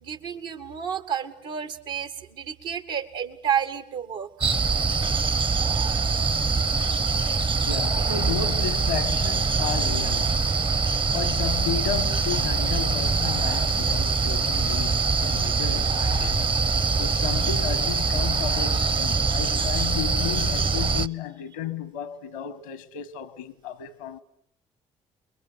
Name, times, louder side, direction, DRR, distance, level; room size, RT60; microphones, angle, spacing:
voice 1, 0.0-4.3 8.0-8.1, right 8 dB, 75° right, 2.1 m, -30 dB
sound 1, 4.4-21.1, right 4 dB, 30° right, 1.0 m, -24 dB
voice 2, 7.7-10.4 11.1-16.6 17.0-24.2, left 9 dB, 80° left, 1.4 m, -33 dB
28.5 x 22.5 x 8.1 m
figure-of-eight pair, 45°, 16 cm